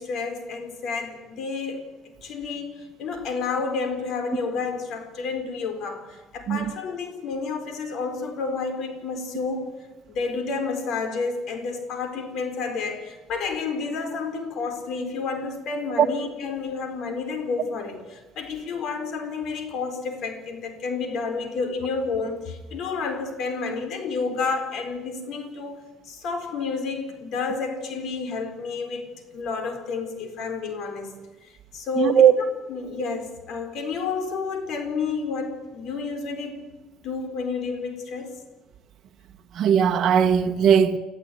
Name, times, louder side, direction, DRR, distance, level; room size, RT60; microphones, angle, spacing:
voice 1, 0.0-1.8 2.2-9.7 10.1-25.8 26.1-29.1 29.3-31.2 31.7-32.2 32.7-36.6 37.0-38.3, left 4 dB, 60° left, 4.2 m, -30 dB
voice 2, 32.0-32.3 39.5-41.0, right 8 dB, 50° right, 1.3 m, -18 dB
26.5 x 14.0 x 9.4 m
cardioid pair, 120°, 0 cm